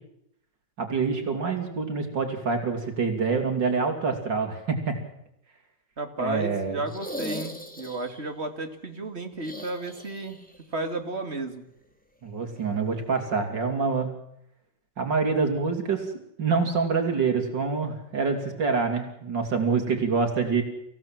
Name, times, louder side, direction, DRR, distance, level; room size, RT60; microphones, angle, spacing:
voice 1, 0.8-5.0 6.2-6.8 12.2-14.1 15.0-20.6, right 4 dB, 85° right, 4 dB, 3.7 m, -26 dB
voice 2, 6.0-10.4 10.7-11.6, right 2 dB, 35° right, 5 dB, 2.8 m, -33 dB
sound 1, 6.9-8.3 9.4-10.6 10.8-10.9 12.6-12.7, equal, 5° left, 3.0 m, -38 dB
27.0 x 16.5 x 7.6 m, 0.78 s
omnidirectional pair, 1.9 m